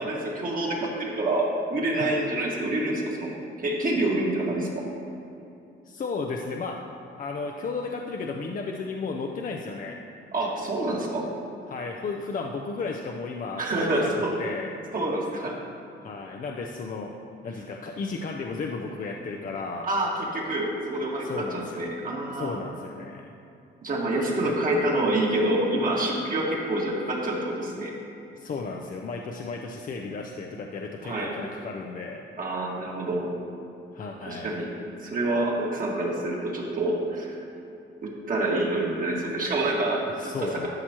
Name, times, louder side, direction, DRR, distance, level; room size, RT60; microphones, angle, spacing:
voice 1, 0.0-4.9 10.3-11.3 13.6-14.3 14.9-15.6 19.8-22.6 23.8-27.9 31.0-31.3 32.4-33.3 34.2-34.7 35.0-37.4 38.0-40.7, right 1 dB, 45° right, -3 dB, 1.8 m, -27 dB
voice 2, 5.8-6.8 7.2-10.0 11.7-14.1 14.4-14.7 16.0-17.1 17.4-19.9 21.2-21.9 22.3-23.3 24.5-24.6 28.4-32.2 33.9-34.6 40.1-40.7, left 4 dB, 45° left, 1 dB, 0.6 m, -34 dB
12.5 x 6.0 x 2.9 m, 2.7 s
cardioid pair, 90°, 20 cm